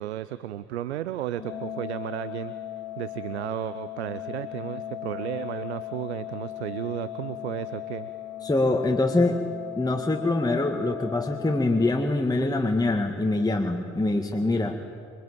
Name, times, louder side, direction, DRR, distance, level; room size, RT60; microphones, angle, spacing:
voice 1, 0.0-2.5 3.0-8.1, right 12 dB, 80° right, 14 dB, 0.7 m, -33 dB
Organ, 1.4-12.4, left 12 dB, 70° left, 2.2 m, -38 dB
voice 2, 8.4-9.4 9.8-14.8, left 2 dB, 10° left, 3 dB, 2.0 m, -24 dB
27.0 x 21.5 x 9.0 m, 2.5 s
figure-of-eight pair, 45°, 33 cm